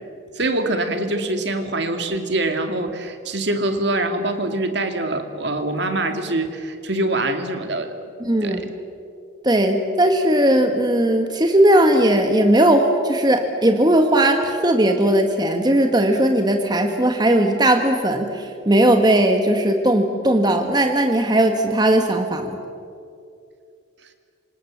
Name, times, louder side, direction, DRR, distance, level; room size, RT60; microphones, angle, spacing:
voice 1, 0.3-7.9 8.4-8.7, right 2 dB, 60° right, 6 dB, 2.3 m, -24 dB
voice 2, 8.2-8.6 9.4-22.6, right 1 dB, 20° right, 5 dB, 1.4 m, -18 dB
27.0 x 26.0 x 7.3 m, 2.5 s
head